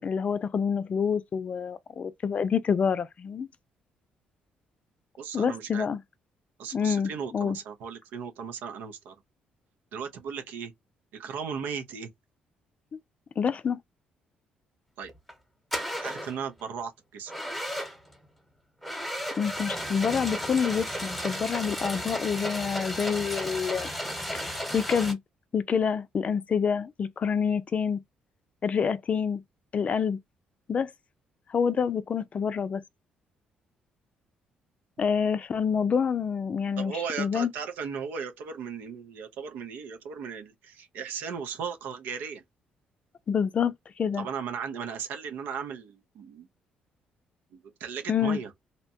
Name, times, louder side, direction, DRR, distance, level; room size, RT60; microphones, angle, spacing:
voice 1, 0.0-3.5 5.3-6.0 6.7-7.6 13.4-13.8 19.4-23.9 24.3-25.2 25.5-28.0 28.6-29.4 29.7-30.2 30.7-30.9 31.5-32.8 35.0-37.5 43.3-44.3 48.1-48.4, left 6 dB, 45° left, 0.4 m, -27 dB
voice 2, 5.2-5.9 6.6-9.1 9.9-10.7 11.1-12.1 15.0-15.1 16.0-17.3 36.8-42.4 44.2-46.5 47.5-48.5, right 6 dB, 80° right, 0.7 m, -36 dB
sound 1, 15.1-15.3 15.7-16.4 17.3-18.1 18.8-25.1, equal, ahead, 1.1 m, -34 dB
2.7 x 2.2 x 2.7 m
supercardioid pair, 65°, 3 cm